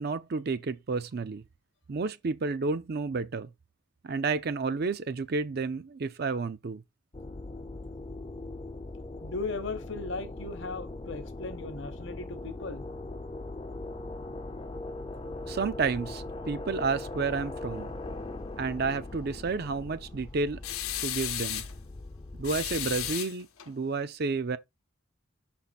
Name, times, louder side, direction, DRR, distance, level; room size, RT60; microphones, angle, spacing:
voice 1, 0.0-1.4 1.9-3.5 4.0-6.8 15.5-18.0 18.6-20.6 21.0-21.6 22.4-24.6, right 4 dB, 45° right, 0.4 m, -31 dB
sound 1, 7.1-23.2, left 2 dB, 25° left, 0.5 m, -40 dB
voice 2, 9.2-12.8, left 3 dB, 55° left, 0.9 m, -37 dB
sound 2, 20.6-21.7 22.4-23.7, left 12 dB, 85° left, 0.8 m, -34 dB
5.8 x 4.3 x 4.0 m
head